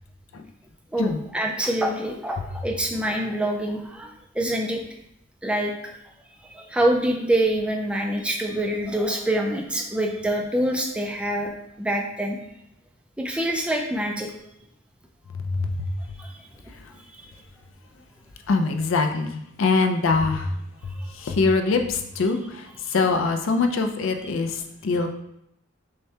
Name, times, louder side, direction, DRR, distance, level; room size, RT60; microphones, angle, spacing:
voice 1, 0.9-4.8 5.4-5.9 6.5-11.5 11.8-12.4 13.2-14.3 16.2-16.3, right 1 dB, 5° right, 1 dB, 0.3 m, -25 dB
voice 2, 18.5-20.5 21.2-25.1, left 4 dB, 60° left, 6 dB, 0.4 m, -23 dB
6.4 x 2.2 x 2.8 m, 0.78 s
head